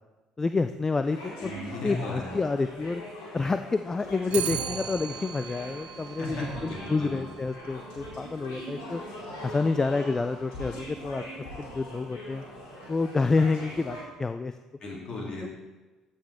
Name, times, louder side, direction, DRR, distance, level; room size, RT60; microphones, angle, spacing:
voice 1, 0.4-1.5 1.8-3.0 3.3-9.0 9.4-12.4 12.9-14.5 15.4-15.5, left 3 dB, 20° left, 10 dB, 0.3 m, -28 dB
sound 1, 1.0-14.0, left 1 dB, 65° left, 2.4 m, -42 dB
voice 2, 1.4-2.3 6.2-7.3 14.8-15.5, left 1 dB, 45° left, -3 dB, 2.9 m, -36 dB
Clock, 4.3-13.7, right 10 dB, 60° right, 0.7 m, -41 dB
14.0 x 5.2 x 3.6 m, 1.2 s
figure-of-eight pair, 50°, 2 cm